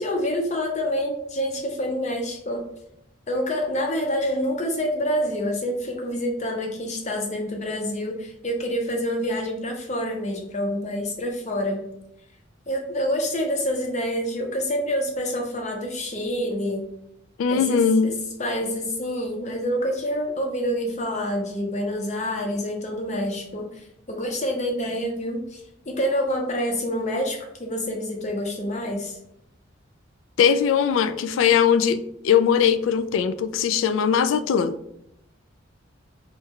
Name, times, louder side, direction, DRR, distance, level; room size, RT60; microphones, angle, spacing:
voice 1, 0.0-2.6 3.3-11.8 12.7-16.8 17.5-18.1 18.4-29.2, equal, 35° left, 2 dB, 0.7 m, -27 dB
voice 2, 17.4-18.1 30.4-34.7, left 7 dB, 80° left, 12 dB, 0.3 m, -20 dB
4.1 x 2.3 x 3.6 m, 0.77 s
head